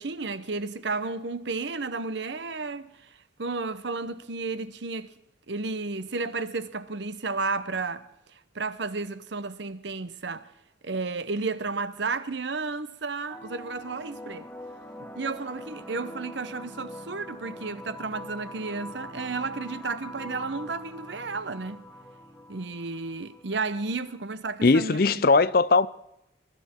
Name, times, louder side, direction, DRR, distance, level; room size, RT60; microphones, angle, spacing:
voice 1, 0.0-2.9 3.4-5.1 5.5-8.1 8.5-10.5 10.8-14.5 15.0-21.8 22.5-25.4, right 3 dB, 70° right, 0.9 m, -32 dB
sound 1, 13.3-24.3, left 1 dB, 5° left, 1.5 m, -43 dB
voice 2, 24.6-25.9, left 3 dB, 50° left, 0.6 m, -19 dB
22.5 x 12.5 x 4.5 m
head